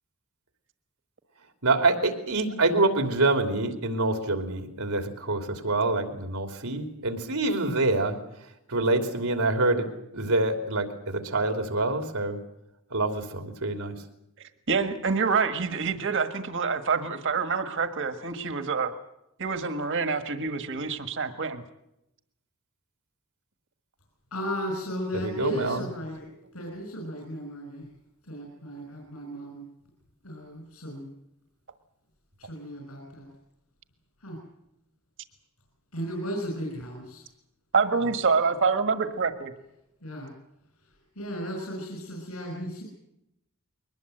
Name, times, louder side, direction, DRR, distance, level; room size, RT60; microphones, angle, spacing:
voice 1, 1.6-8.2 8.7-9.9 10.1-12.4 12.9-14.0 25.1-25.8, right 2 dB, 85° right, 5 dB, 3.1 m, -26 dB
voice 2, 14.7-18.9 19.4-21.6 37.7-39.5, right 5 dB, 60° right, 8 dB, 1.6 m, -26 dB
voice 3, 24.3-26.3 26.5-27.9 28.2-29.7 30.2-31.1 32.4-33.3 34.2-34.4 35.9-37.2 38.0-38.1 40.0-40.3 41.2-42.8, equal, 80° left, 1 dB, 5.9 m, -35 dB
22.5 x 20.0 x 7.9 m, 0.84 s
head